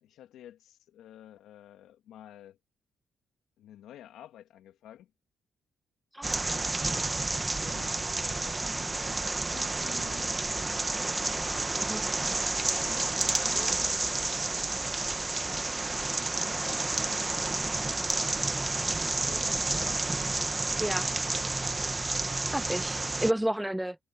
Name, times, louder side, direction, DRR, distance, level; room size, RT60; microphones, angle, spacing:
voice 1, 0.0-2.6 3.6-5.1 6.8-7.1 7.6-11.8 12.6-14.4 15.4-15.8 16.3-18.4 19.0-20.1 22.7-23.2, left 11 dB, 80° left, 2.6 m, -50 dB
voice 2, 6.1-6.5 11.8-12.0 20.8-21.1 22.5-24.0, right 1 dB, 5° right, 0.3 m, -31 dB
sound 1, 6.2-23.3, right 2 dB, 20° right, 1.2 m, -30 dB
cardioid pair, 90°, 0 cm